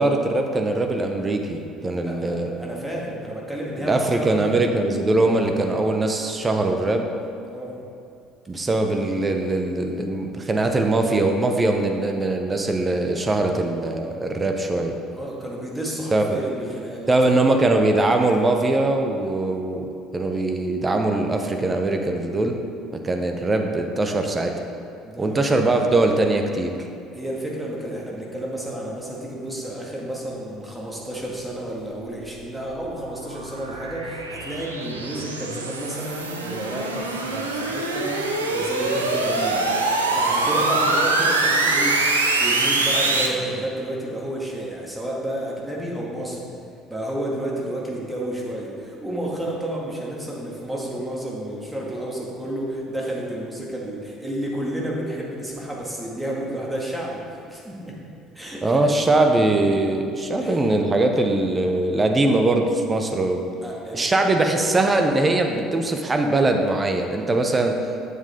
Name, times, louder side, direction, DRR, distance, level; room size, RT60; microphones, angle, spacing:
voice 1, 0.0-2.5 3.8-7.1 8.5-14.9 16.1-16.4 17.1-22.6 22.9-24.5 25.2-26.9 58.6-63.5 63.9-67.8, right 2 dB, 25° right, 4 dB, 0.9 m, -21 dB
voice 2, 2.1-4.5 7.5-7.8 15.1-17.4 25.0-25.6 27.1-42.0 42.3-46.5 46.9-58.0 58.3-58.9 60.4-60.7 63.6-64.1, right 1 dB, 5° right, -3 dB, 2.1 m, -31 dB
sound 1, 32.0-43.3, right 2 dB, 85° right, 0.6 m, -24 dB
8.2 x 7.3 x 3.8 m, 2.5 s
figure-of-eight pair, 60°, 0 cm